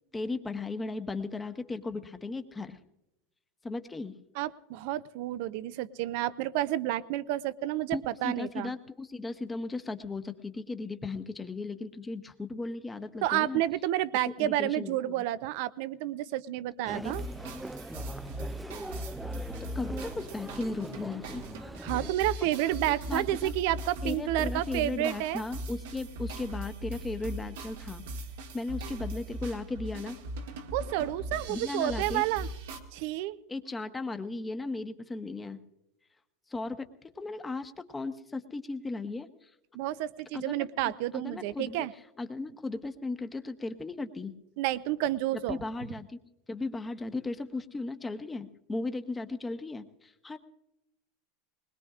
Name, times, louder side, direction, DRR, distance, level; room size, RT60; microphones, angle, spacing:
voice 1, 0.1-2.8 3.6-4.1 7.9-13.6 14.3-15.2 16.9-17.1 18.9-19.0 19.7-21.4 22.9-23.5 24.0-28.0 28.5-30.2 31.5-32.2 33.5-35.6 36.5-36.9 37.1-39.3 40.3-40.5 40.8-41.9 42.2-44.3 45.5-46.2 46.5-50.4, left 3 dB, 15° left, 8 dB, 1.0 m, -36 dB
voice 2, 4.4-8.7 13.2-17.2 21.8-25.4 30.7-32.5 32.9-33.4 39.7-41.9 44.6-45.6, right 14 dB, 65° right, 16 dB, 0.6 m, -30 dB
Human voice, 16.9-22.1, right 1 dB, 5° right, 0.4 m, -42 dB
sound 1, 17.0-32.8, right 1 dB, 80° right, 1.6 m, -39 dB
21.0 x 20.5 x 2.5 m, 0.90 s
hypercardioid pair, 105°, 0 cm